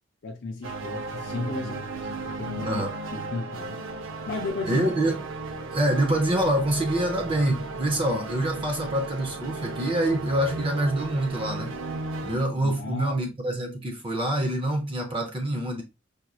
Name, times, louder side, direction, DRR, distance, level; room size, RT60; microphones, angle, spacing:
voice 1, 0.2-2.8 3.1-3.8 4.3-4.9 12.6-13.4, left 3 dB, 60° left, 0.5 m, -34 dB
sound 1, 0.6-12.4, right 3 dB, 85° right, 0.6 m, -35 dB
voice 2, 2.6-2.9 4.7-5.2 5.7-11.7 12.2-15.8, right 1 dB, 25° right, 0.7 m, -26 dB
5.0 x 2.9 x 2.3 m
head